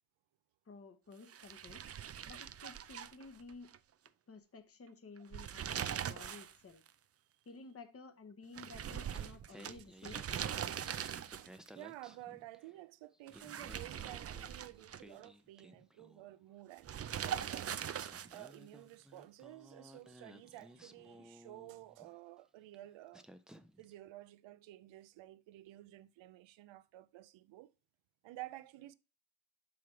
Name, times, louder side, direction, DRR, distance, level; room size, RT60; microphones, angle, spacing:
voice 1, 0.6-1.8 2.3-3.7 4.3-6.8 7.4-10.7, left 4 dB, 30° left, 1.1 m, -53 dB
sound 1, 1.3-3.8 4.1-4.2 5.2-6.6 6.9-7.0 8.6-11.7 13.3-15.3 16.8-18.5, right 9 dB, 30° right, 0.5 m, -41 dB
Singing, 8.9-12.8 13.1-16.4 17.4-17.5 17.9-22.1 22.7-22.9 23.1-23.9, equal, ahead, 0.7 m, -58 dB
voice 2, 11.3-17.7 18.3-23.3 23.8-27.7 28.2-28.9, right 16 dB, 75° right, 0.7 m, -52 dB
5.8 x 4.9 x 4.7 m
supercardioid pair, 55°, 47 cm